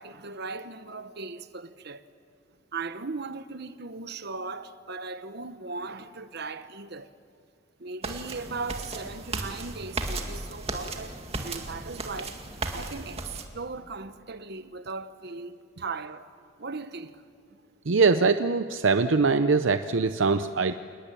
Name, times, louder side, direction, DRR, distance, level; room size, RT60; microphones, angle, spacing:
voice 1, 0.0-2.1 2.7-7.1 7.8-12.4 12.7-16.3 16.6-17.2, right 4 dB, 55° right, 1.1 m, -38 dB
sound 1, 8.0-13.4, right 2 dB, 30° right, 2.2 m, -35 dB
voice 2, 17.9-20.7, right 4 dB, 70° right, 0.7 m, -22 dB
29.0 x 20.0 x 9.1 m
head